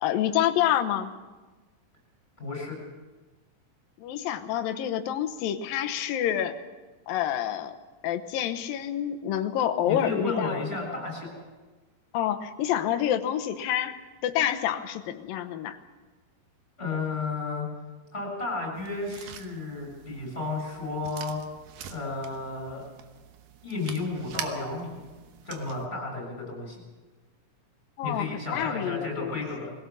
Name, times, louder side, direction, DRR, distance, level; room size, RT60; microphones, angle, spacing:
voice 1, 0.0-1.1 4.0-6.6 7.1-7.8 8.0-10.6 12.1-15.8 28.0-29.4, left 10 dB, 80° left, 7 dB, 2.7 m, -28 dB
voice 2, 2.4-2.8 9.8-11.4 16.8-17.7 18.1-21.4 21.9-22.8 23.6-25.0 25.5-26.8 28.0-29.7, left 3 dB, 15° left, 0 dB, 7.1 m, -32 dB
sound 1, 18.7-25.9, right 9 dB, 75° right, 2.8 m, -44 dB
21.5 x 17.0 x 7.1 m, 1.3 s
omnidirectional pair, 4.0 m